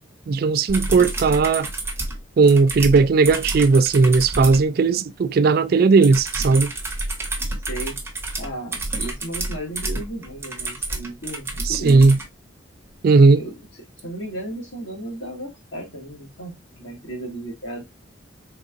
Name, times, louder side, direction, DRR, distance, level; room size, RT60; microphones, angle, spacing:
voice 1, 0.3-1.7 2.4-6.7 11.6-12.2 13.0-13.4, right 4 dB, 50° right, 0.3 m, -16 dB
sound 1, 0.7-4.7 6.0-12.3 14.0-14.1, right 2 dB, 10° right, 0.7 m, -29 dB
voice 2, 7.7-8.0 8.4-12.1 13.4-13.6 14.0-17.8, right 1 dB, 70° left, 1.9 m, -34 dB
3.9 x 3.5 x 2.5 m
head